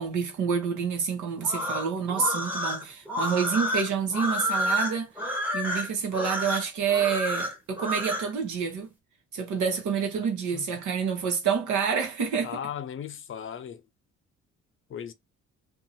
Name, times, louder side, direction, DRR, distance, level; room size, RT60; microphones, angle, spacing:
voice 1, 0.0-5.1 5.5-8.9 9.3-12.6, right 6 dB, 75° right, 1.1 m, -28 dB
sound 1, 1.4-8.3, left 1 dB, 5° right, 1.0 m, -30 dB
voice 2, 12.4-13.8 14.9-15.1, left 8 dB, 45° left, 0.5 m, -36 dB
2.6 x 2.4 x 2.7 m
cardioid pair, 90°, 30 cm